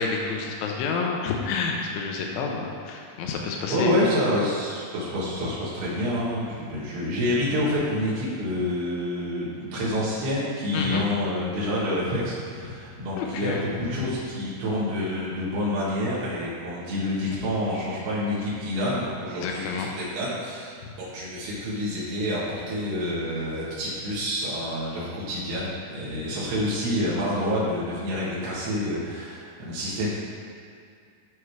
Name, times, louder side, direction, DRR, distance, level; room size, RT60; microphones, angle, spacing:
voice 1, 0.0-3.9 10.7-11.1 13.2-14.1 19.4-19.9 20.8-20.9, left 4 dB, 90° left, 0 dB, 2.8 m, -29 dB
voice 2, 3.6-20.7 21.0-30.1, left 1 dB, 80° right, -8 dB, 3.5 m, -28 dB
13.5 x 4.7 x 3.2 m, 2.3 s
omnidirectional pair, 4.7 m